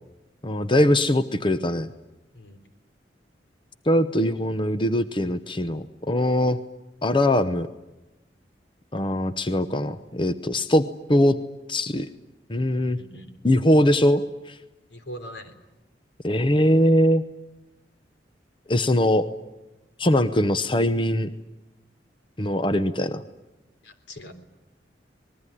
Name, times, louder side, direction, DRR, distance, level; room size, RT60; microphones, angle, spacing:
voice 1, 0.4-1.9 3.9-6.6 7.0-7.7 8.9-11.4 11.7-12.1 12.5-13.0 13.4-14.2 14.5-14.6 16.2-17.2 18.7-19.3 20.0-21.3 22.4-23.2, left 1 dB, 30° left, 11 dB, 0.9 m, -21 dB
voice 2, 12.7-13.3 14.9-15.6 23.8-24.3, equal, 85° left, 8 dB, 3.7 m, -41 dB
25.5 x 21.0 x 10.0 m, 1.0 s
head